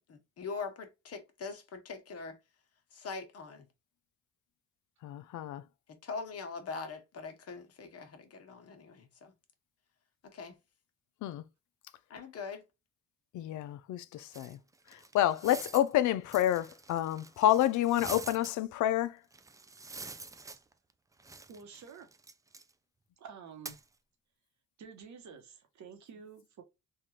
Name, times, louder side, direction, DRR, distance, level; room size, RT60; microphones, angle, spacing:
voice 1, 0.1-2.4 2.9-3.7 5.9-9.3 10.2-10.6 12.1-12.6, left 4 dB, 55° left, 1.1 m, -42 dB
voice 2, 5.0-5.6 11.2-11.4 13.3-14.6 14.9-19.2, left 13 dB, 75° left, 0.5 m, -29 dB
sound 1, 14.3-15.9 16.3-18.5 19.3-20.9 21.2-22.7 23.6-23.8, right 3 dB, 10° right, 0.3 m, -46 dB
voice 3, 21.5-22.1 23.2-23.8 24.8-26.6, right 6 dB, 65° right, 1.1 m, -49 dB
3.4 x 2.5 x 2.9 m
cardioid pair, 90°, 30 cm